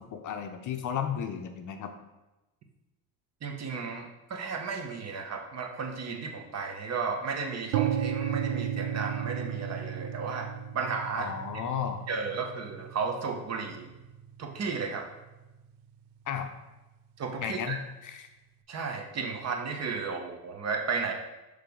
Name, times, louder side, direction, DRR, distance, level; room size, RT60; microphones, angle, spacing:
voice 1, 0.0-1.9 11.1-12.0 16.3-16.5 17.4-18.3, left 8 dB, 45° left, 6 dB, 0.6 m, -34 dB
voice 2, 3.4-10.5 10.7-11.3 12.1-13.9 14.4-15.0 17.2-17.8 18.7-21.1, right 5 dB, 35° right, 3 dB, 1.0 m, -34 dB
sound 1, 7.7-15.6, right 9 dB, 65° right, 0.5 m, -35 dB
6.6 x 3.3 x 5.3 m, 1.0 s
cardioid pair, 115°, 43 cm